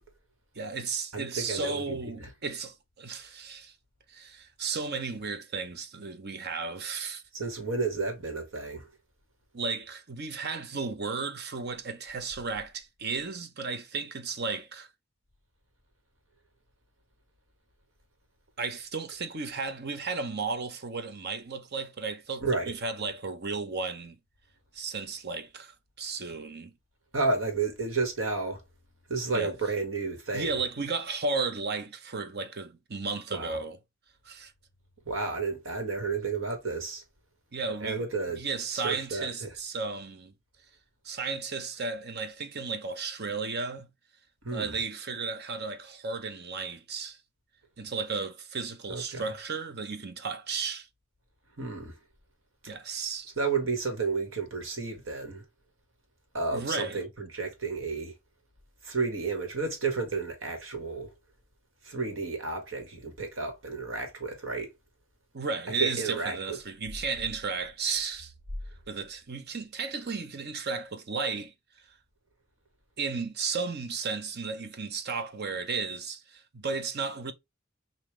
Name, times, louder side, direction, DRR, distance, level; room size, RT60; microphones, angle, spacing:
voice 1, 0.5-3.7 4.1-7.2 9.5-14.9 18.6-24.2 24.7-26.7 29.3-29.5 30.3-33.8 34.2-34.5 37.5-38.0 38.3-40.3 41.0-43.9 44.5-47.2 47.8-50.9 52.7-53.3 56.5-57.0 65.3-68.3 68.9-71.5 71.9-72.0 73.0-77.3, right 4 dB, 55° right, 0.9 m, -34 dB
voice 2, 1.1-2.3 7.3-8.9 22.4-22.7 27.1-28.6 29.1-30.6 33.3-33.6 35.0-37.0 37.8-38.4 38.7-39.5 44.4-44.8 48.9-49.2 51.6-52.0 53.4-55.4 56.3-58.1 58.8-61.1 61.8-64.7 65.8-66.6, right 4 dB, 80° right, 1.9 m, -32 dB
5.5 x 2.9 x 3.2 m
head